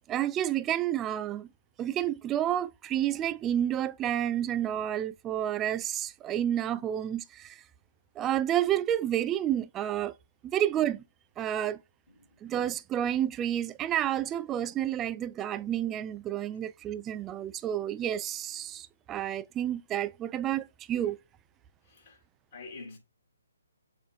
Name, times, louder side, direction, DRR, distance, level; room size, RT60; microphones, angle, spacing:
voice 1, 0.1-1.5 1.8-7.6 8.2-10.1 10.4-11.0 11.4-11.8 12.4-21.2, right 11 dB, 15° right, 0.3 m, -30 dB
voice 2, 21.8-22.2 22.5-23.0, left 4 dB, 40° left, 3.1 m, -46 dB
7.1 x 3.1 x 2.4 m
figure-of-eight pair, 145°, 0 cm